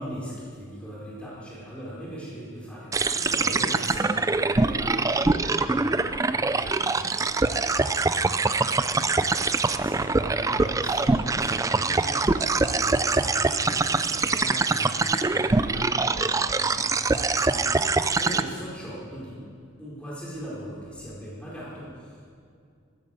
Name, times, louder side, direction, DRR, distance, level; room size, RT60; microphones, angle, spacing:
voice 1, 0.0-19.4 19.8-22.3, equal, 5° left, -6 dB, 4.2 m, -40 dB
sound 1, 2.9-18.4, right 3 dB, 15° right, 0.3 m, -24 dB
14.0 x 10.5 x 7.5 m, 2.3 s
head